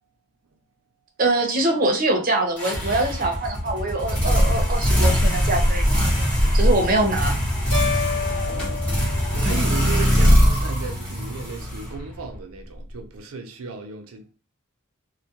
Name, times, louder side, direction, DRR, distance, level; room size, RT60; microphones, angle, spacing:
voice 1, 1.2-6.1 6.5-7.3 9.4-9.7, right 2 dB, 40° right, 0.6 m, -23 dB
sound 1, 2.6-12.3, equal, 5° left, 0.8 m, -21 dB
sound 2, 7.7-10.0, left 5 dB, 60° left, 0.7 m, -30 dB
voice 2, 8.3-8.9 9.3-14.3, right 4 dB, 85° right, 0.5 m, -35 dB
2.3 x 2.1 x 2.8 m
head